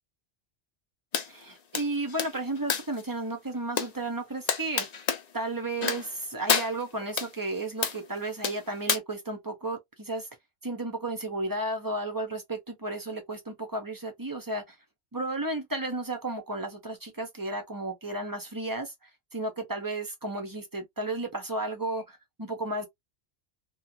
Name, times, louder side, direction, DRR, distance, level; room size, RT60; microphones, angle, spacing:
sound 1, 1.1-1.3 1.7-3.0 3.8-3.9 4.5-5.2 5.8-6.2 6.5-7.3 7.8-8.0 8.4-9.0, left 6 dB, 50° left, 0.5 m, -28 dB
voice 1, 1.3-4.9 5.3-10.3 10.6-14.8 15.1-18.9 19.3-22.9, right 2 dB, 25° right, 0.5 m, -33 dB
2.4 x 2.3 x 2.8 m
omnidirectional pair, 1.2 m